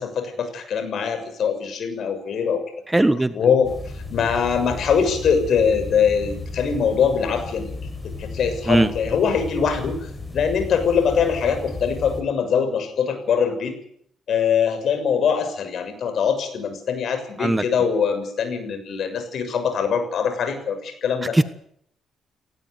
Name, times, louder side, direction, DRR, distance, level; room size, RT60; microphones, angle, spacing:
voice 1, 0.0-2.6 3.3-3.7 4.1-7.8 8.2-10.0 10.3-13.7 14.3-21.4, left 6 dB, 65° left, 8 dB, 6.8 m, -22 dB
voice 2, 2.9-3.3 8.7-8.9 17.4-17.6 21.3-21.4, right 1 dB, 10° right, 13 dB, 1.3 m, -18 dB
sound 1, 3.6-12.2, left 3 dB, 15° left, 6.1 m, -34 dB
19.0 x 18.0 x 9.5 m, 0.68 s
cardioid pair, 90°, 0 cm